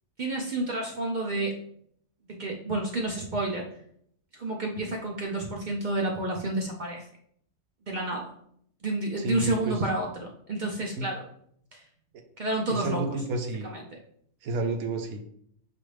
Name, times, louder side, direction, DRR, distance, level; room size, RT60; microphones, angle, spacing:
voice 1, 0.2-1.6 2.3-3.7 4.3-7.0 7.9-8.3 8.8-10.1 10.5-11.2 11.7-11.8 12.4-13.0 13.6-13.8, right 2 dB, 65° right, 0 dB, 0.4 m, -30 dB
voice 2, 9.2-9.8 11.0-11.1 12.7-13.7 14.4-15.2, right 2 dB, 85° right, 4 dB, 1.1 m, -30 dB
5.8 x 2.5 x 3.2 m, 0.66 s
omnidirectional pair, 1.5 m